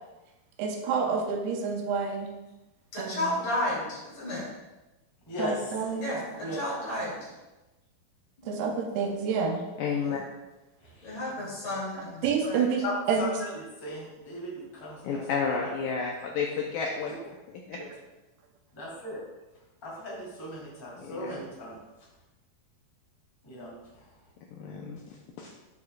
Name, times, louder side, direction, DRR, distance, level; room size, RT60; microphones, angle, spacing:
voice 1, 0.6-2.3 3.0-3.2 5.4-6.1 8.5-9.6 12.2-13.3 17.7-17.8, right 5 dB, 80° right, 2 dB, 2.6 m, -28 dB
voice 2, 2.9-4.5 6.0-7.3 8.4-8.7 10.0-10.2 11.0-12.7, left 1 dB, 45° left, -7 dB, 3.8 m, -33 dB
voice 3, 5.3-5.9 6.4-6.6 10.8-11.2 12.8-15.7 17.8-17.9 18.7-19.2 19.8-21.8 23.4-23.7 24.0-24.1, left 1 dB, 10° left, -6 dB, 1.3 m, -37 dB
voice 4, 9.8-10.2 15.0-17.2 17.5-17.8 21.0-21.4 24.5-25.0 25.4-25.5, left 5 dB, 85° left, -1 dB, 2.0 m, -31 dB
11.5 x 5.4 x 2.4 m, 1.1 s
omnidirectional pair, 4.6 m